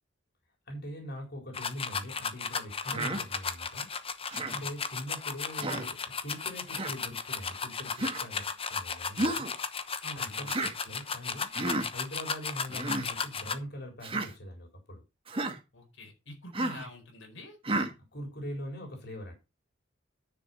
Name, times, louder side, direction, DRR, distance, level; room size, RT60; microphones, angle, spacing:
voice 1, 0.7-4.0 4.5-9.5 10.2-11.5 11.9-15.0 18.1-19.3, equal, 60° left, 4.0 m, -42 dB
sound 1, 1.5-13.5, left 5 dB, 30° left, 1.0 m, -35 dB
Human voice, 2.9-3.2 4.3-4.6 5.6-5.9 6.7-6.9 8.0-8.2 9.2-9.5 10.5-10.7 11.5-11.9 12.7-13.1 14.0-14.3 15.3-15.6 16.5-16.9 17.6-17.9, right 2 dB, 30° right, 1.6 m, -32 dB
voice 2, 10.0-10.5 15.7-17.6, left 1 dB, 85° left, 4.6 m, -46 dB
10.5 x 6.6 x 5.5 m
head